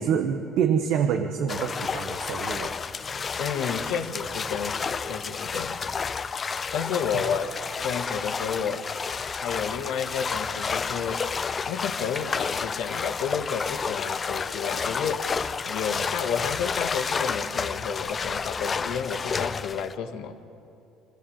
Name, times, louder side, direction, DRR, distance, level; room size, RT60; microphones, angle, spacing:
voice 1, 0.0-2.7, right 7 dB, 70° right, 5 dB, 1.2 m, -26 dB
sound 1, 1.5-19.9, left 5 dB, 35° left, 0.7 m, -30 dB
voice 2, 3.0-5.9 6.7-8.9 9.4-11.2 11.7-15.3 15.7-20.4, left 7 dB, 75° left, 7 dB, 1.5 m, -31 dB
26.5 x 13.0 x 8.7 m, 2.7 s
cardioid pair, 95°, 0 cm